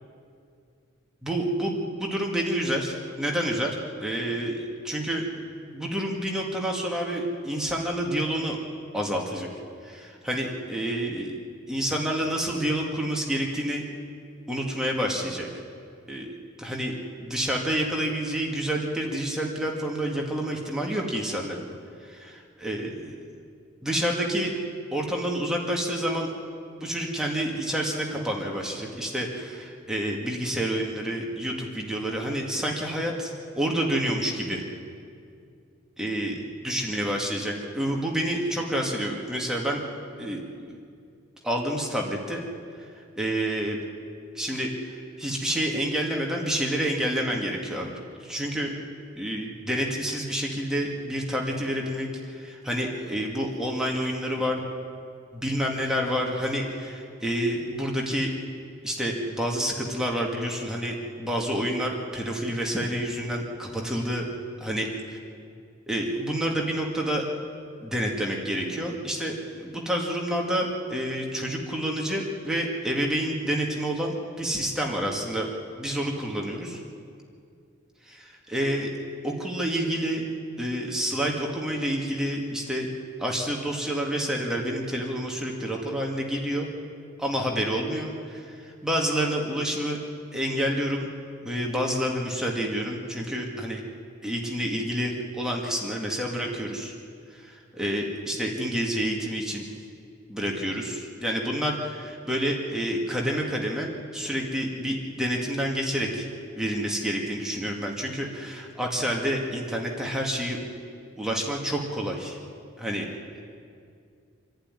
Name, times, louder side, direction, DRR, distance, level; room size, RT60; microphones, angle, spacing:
voice 1, 1.2-3.7 4.0-5.5 5.7-8.6 8.9-9.5 9.8-11.4 11.7-13.9 14.5-15.5 16.1-16.3 16.6-21.6 22.0-23.2 23.8-24.5 24.9-26.3 26.8-34.6 36.0-39.8 40.2-40.8 41.4-42.4 43.2-43.8 44.4-47.9 48.2-48.7 49.2-54.6 55.3-58.3 58.8-64.3 64.6-64.9 65.9-67.3 67.8-75.5 75.8-76.8 78.1-78.9 79.2-80.2 80.6-82.9 83.2-86.7 87.2-90.0 90.3-91.1 91.4-93.8 94.2-96.9 97.4-99.6 100.3-106.3 106.6-110.6 111.2-112.4 112.8-113.1, equal, 5° right, -1 dB, 2.1 m, -28 dB
26.5 x 11.5 x 9.7 m, 2.3 s
head